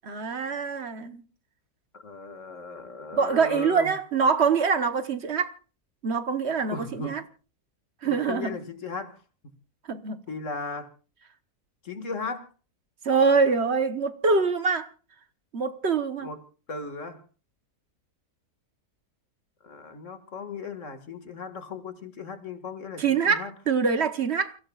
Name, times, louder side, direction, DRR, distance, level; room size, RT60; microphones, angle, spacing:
voice 1, 0.0-1.2 3.1-5.5 6.0-7.2 8.0-8.6 9.9-10.2 13.0-14.9 15.5-16.3 23.0-24.6, right 5 dB, 45° right, 1.2 m, -24 dB
voice 2, 1.9-3.9 6.7-7.2 8.0-9.2 10.3-10.9 11.8-12.5 16.2-16.4 16.7-17.2 19.6-23.5, left 4 dB, 50° left, 2.2 m, -37 dB
29.0 x 16.0 x 2.4 m
omnidirectional pair, 1.6 m